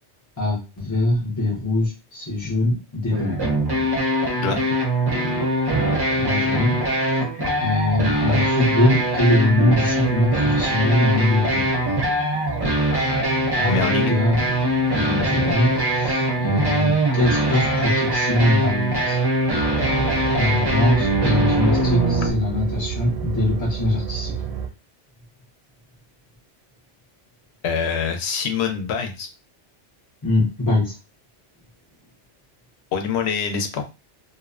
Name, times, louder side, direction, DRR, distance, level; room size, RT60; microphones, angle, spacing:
voice 1, 0.4-3.4 6.2-7.1 7.6-11.7 13.5-14.4 14.9-19.2 20.3-24.3 30.2-31.0, left 1 dB, 25° left, -5 dB, 0.4 m, -22 dB
sound 1, 3.1-22.3, right 1 dB, 30° right, 0.5 m, -22 dB
voice 2, 13.7-14.1 27.6-29.3 32.9-33.8, left 6 dB, 70° left, 5 dB, 0.8 m, -25 dB
sound 2, 19.6-24.7, right 7 dB, 65° right, 0.7 m, -29 dB
2.5 x 2.1 x 2.4 m, 0.29 s
omnidirectional pair, 1.2 m